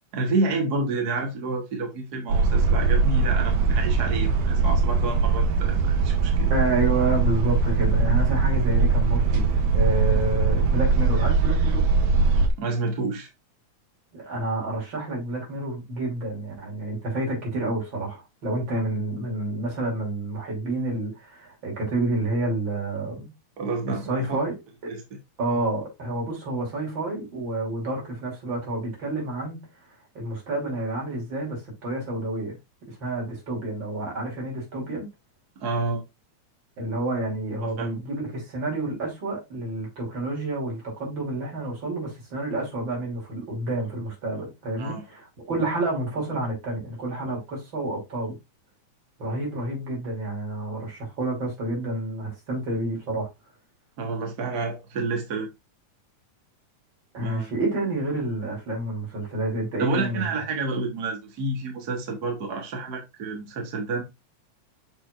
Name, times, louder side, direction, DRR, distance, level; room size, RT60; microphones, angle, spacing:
voice 1, 0.1-6.5 12.6-13.3 23.6-24.4 24.9-25.0 35.6-36.0 37.6-37.9 44.8-45.0 54.0-55.5 57.2-57.5 59.8-64.1, right 3 dB, 55° right, 1.1 m, -29 dB
sound 1, 2.3-12.5, right 4 dB, 85° right, 2.5 m, -21 dB
voice 2, 6.5-9.5 9.7-11.9 14.1-23.3 24.1-24.5 24.8-24.9 25.4-29.7 30.1-32.6 32.9-35.1 36.8-48.3 49.2-53.3 57.1-60.3, right 2 dB, 40° right, 3.4 m, -29 dB
6.5 x 6.3 x 2.4 m
omnidirectional pair, 3.4 m